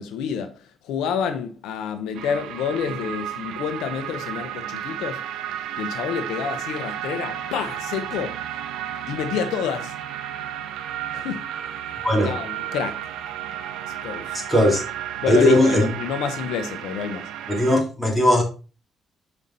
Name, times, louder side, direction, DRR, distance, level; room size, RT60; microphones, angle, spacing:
voice 1, 0.0-5.2 5.8-8.4 9.1-9.9 11.1-11.5 12.2-13.0 13.9-14.4 15.2-17.3, left 7 dB, 90° left, 0.9 m, -28 dB
sound 1, 2.1-17.8, right 11 dB, 85° right, 0.8 m, -33 dB
voice 2, 12.0-12.3 14.5-14.8 15.3-15.9 17.5-18.4, left 1 dB, 5° left, 3.4 m, -18 dB
7.1 x 5.4 x 4.1 m
cardioid pair, 90°, 0 cm